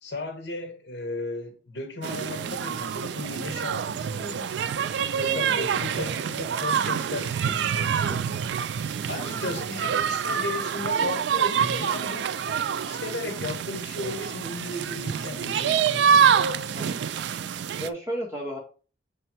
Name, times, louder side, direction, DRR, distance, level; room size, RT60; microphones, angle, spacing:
voice 1, 0.0-4.5 5.1-8.3 9.1-12.3 12.9-16.5, left 2 dB, 65° left, 1.2 m, -35 dB
sound 1, 2.0-17.9, right 7 dB, 60° right, 0.3 m, -26 dB
voice 2, 5.3-5.7 9.2-9.6 16.7-17.1 17.8-18.6, right 1 dB, 15° right, 1.8 m, -34 dB
6.4 x 3.3 x 4.5 m
head